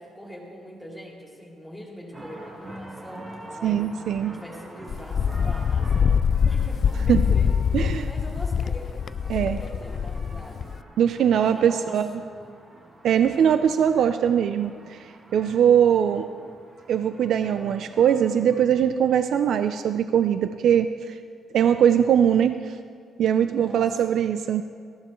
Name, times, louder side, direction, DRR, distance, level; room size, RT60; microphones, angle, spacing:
voice 1, 0.0-3.9 4.3-7.7 8.0-8.9 9.2-10.7 11.4-12.6 23.5-24.2, equal, 5° left, -2 dB, 2.7 m, -43 dB
sound 1, 2.1-18.6, right 1 dB, 25° right, 2.5 m, -46 dB
voice 2, 3.6-4.3 7.1-7.2 7.7-8.1 9.3-9.6 11.0-12.1 13.0-16.3 16.9-21.2 21.5-22.8 23.2-24.6, right 9 dB, 65° right, 9 dB, 0.5 m, -21 dB
Wind, 4.9-10.8, left 7 dB, 45° left, 0.3 m, -24 dB
18.5 x 15.0 x 3.1 m, 2.1 s
cardioid pair, 125°, 0 cm